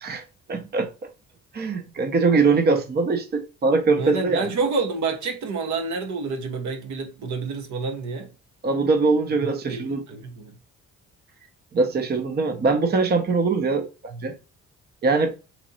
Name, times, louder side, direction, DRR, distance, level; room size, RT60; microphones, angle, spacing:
voice 1, 0.5-0.9 1.5-4.4 8.6-10.0 11.7-14.4 15.0-15.3, right 4 dB, 35° right, 0.6 m, -22 dB
voice 2, 4.0-8.3 9.7-10.5, right 4 dB, 70° right, 0.9 m, -28 dB
3.0 x 2.8 x 3.9 m
cardioid pair, 90°, 30 cm